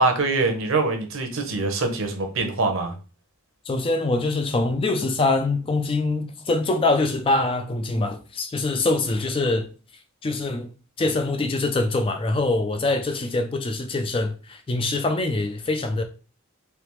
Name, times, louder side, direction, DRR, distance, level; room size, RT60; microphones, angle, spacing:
voice 1, 0.0-2.9, right 3 dB, 65° right, 0.8 m, -23 dB
voice 2, 3.7-9.7 10.2-10.7 11.0-16.0, left 2 dB, 25° left, 0.3 m, -24 dB
3.3 x 2.9 x 3.0 m
head